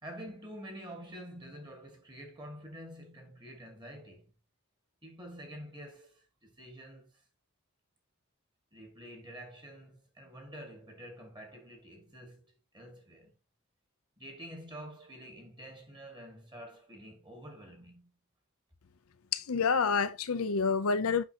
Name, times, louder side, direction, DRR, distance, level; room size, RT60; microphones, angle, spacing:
voice 1, 0.0-4.3 5.0-7.2 8.7-13.3 14.2-18.1, equal, 20° right, 1.9 m, -48 dB
voice 2, 19.3-21.2, left 5 dB, 85° left, 0.7 m, -28 dB
8.0 x 5.6 x 2.9 m
head